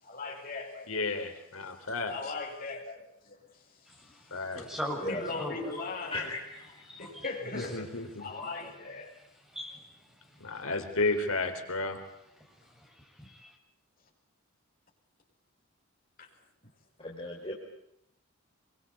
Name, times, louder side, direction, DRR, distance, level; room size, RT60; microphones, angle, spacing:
voice 1, 0.0-1.3 1.6-1.7 2.1-3.4 5.1-6.3 7.0-7.9 8.2-9.1 16.2-16.3, left 3 dB, 40° left, 0 dB, 7.6 m, -39 dB
voice 2, 0.9-2.3 4.3-4.6 7.5-8.3 10.4-12.0, left 3 dB, 75° left, 5 dB, 3.9 m, -32 dB
voice 3, 3.8-5.6 6.8-7.3 7.6-7.7 8.1-10.7 12.4-13.6, equal, 5° right, 0 dB, 6.8 m, -43 dB
voice 4, 6.1-6.8 17.0-17.5, left 2 dB, 25° left, -2 dB, 4.5 m, -37 dB
26.5 x 24.0 x 8.6 m, 0.75 s
head